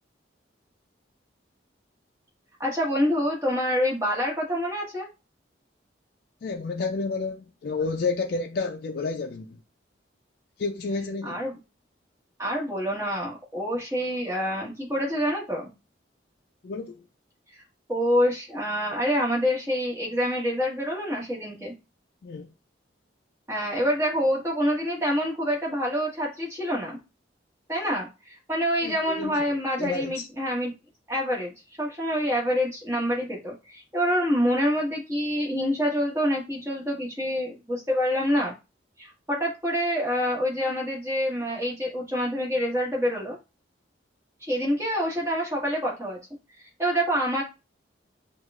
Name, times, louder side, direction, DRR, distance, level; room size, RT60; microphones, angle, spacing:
voice 1, 2.6-5.1 11.2-11.6 12.4-15.7 17.5-17.6 17.9-21.7 23.5-27.0 27.7-30.7 31.1-31.5 31.8-38.5 39.0-43.4 44.5-46.2 46.8-47.4, equal, 15° right, 1.5 m, -26 dB
voice 2, 6.4-9.6 10.6-11.4 16.6-17.0 22.2-22.5 28.8-29.3 29.8-30.3, left 4 dB, 55° left, 0.3 m, -30 dB
6.2 x 2.4 x 2.4 m
head